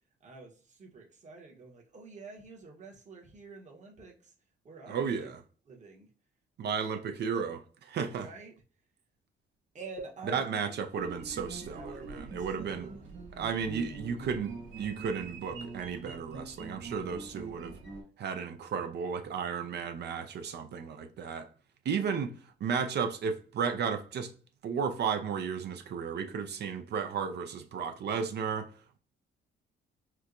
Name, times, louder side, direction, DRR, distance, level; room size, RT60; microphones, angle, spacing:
voice 1, 0.2-4.3 4.6-5.3 5.7-6.1 8.1-8.5 9.7-10.8 11.7-13.0, right 3 dB, 35° right, 1.0 m, -48 dB
voice 2, 4.9-5.4 6.6-8.3 10.3-12.9 13.4-17.7 18.2-21.5 21.9-22.3 22.6-24.3 24.6-28.7, right 6 dB, 55° right, 0.5 m, -33 dB
sound 1, 10.9-18.0, right 3 dB, 75° right, 1.3 m, -44 dB
4.4 x 2.2 x 2.5 m
cardioid pair, 90°, 20 cm